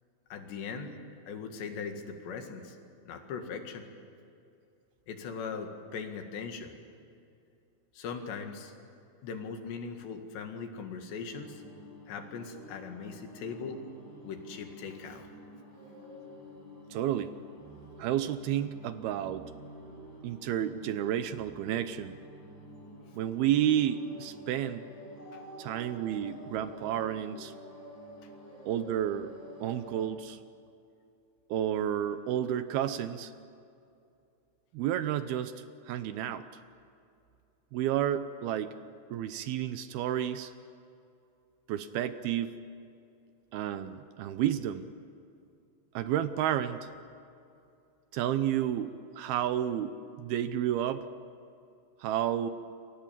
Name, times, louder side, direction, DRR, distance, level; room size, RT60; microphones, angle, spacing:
voice 1, 0.3-0.9 1.3-2.8 3.1-3.9 5.1-6.8 7.9-8.7 9.2-11.6 12.1-13.8 14.2-15.3 25.3-25.4, left 5 dB, 80° left, 5 dB, 4.2 m, -40 dB
sound 1, 11.3-30.1, equal, 5° left, 7.1 m, -49 dB
voice 2, 16.9-17.3 18.0-19.5 20.2-22.2 23.1-24.9 25.6-27.5 28.7-29.3 29.6-30.4 31.5-33.3 34.7-35.5 35.9-36.5 37.7-38.7 39.1-40.5 41.7-42.6 43.5-44.9 45.9-46.9 48.1-51.1 52.0-52.5, right 11 dB, 75° right, 11 dB, 2.5 m, -31 dB
28.5 x 25.0 x 7.5 m, 2.5 s
omnidirectional pair, 4.9 m